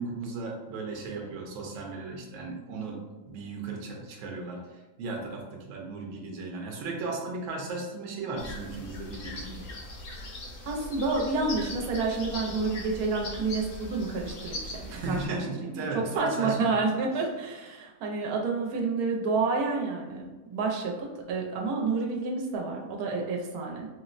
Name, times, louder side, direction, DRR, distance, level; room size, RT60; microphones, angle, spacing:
voice 1, 0.0-3.0 3.3-9.6 14.9-16.8, right 3 dB, 65° right, 0 dB, 0.9 m, -36 dB
sound 1, 8.4-15.3, left 1 dB, 65° left, 1.0 m, -40 dB
voice 2, 10.7-23.9, right 3 dB, 90° right, 0 dB, 1.1 m, -29 dB
4.3 x 2.0 x 2.4 m, 1.2 s
omnidirectional pair, 1.5 m